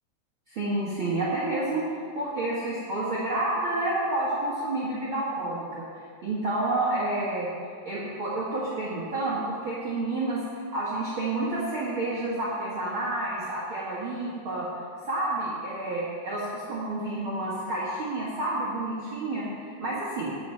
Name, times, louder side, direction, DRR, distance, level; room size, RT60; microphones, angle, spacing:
voice 1, 0.5-1.8 2.1-5.9 6.2-7.5 7.8-14.7 15.1-20.3, right 2 dB, 90° right, -8 dB, 1.1 m, -29 dB
8.9 x 8.6 x 5.7 m, 2.1 s
omnidirectional pair, 4.9 m